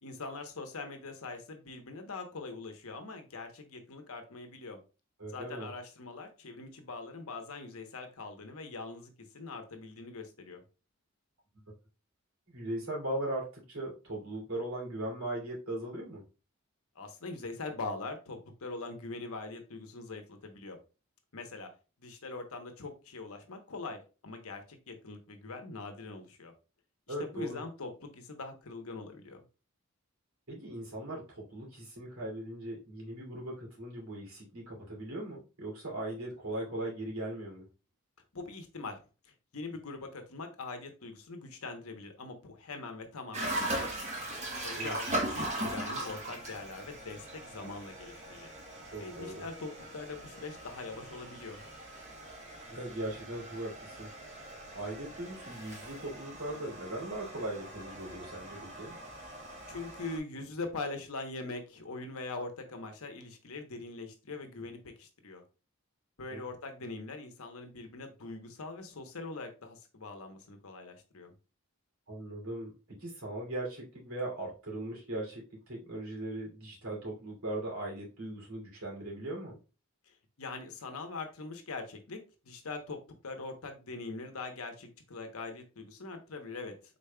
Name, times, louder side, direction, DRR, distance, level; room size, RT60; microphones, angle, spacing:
voice 1, 0.0-4.8 5.3-10.6 16.9-20.8 21.3-21.7 22.0-26.5 27.2-29.4 38.3-39.0 39.2-44.0 44.6-48.5 49.0-51.6 59.7-65.4 66.2-71.3 80.1-82.2 82.4-86.7, left 3 dB, 75° left, 5 dB, 0.9 m, -42 dB
voice 2, 5.2-5.7 12.5-16.2 27.1-27.6 30.5-37.7 44.8-44.9 48.8-49.4 52.7-54.1 54.7-59.0 66.3-66.4 72.1-79.6, right 1 dB, 75° right, -3 dB, 2.4 m, -39 dB
sound 1, 43.3-60.2, right 1 dB, 30° right, 1.0 m, -40 dB
5.1 x 4.0 x 2.2 m, 0.32 s
head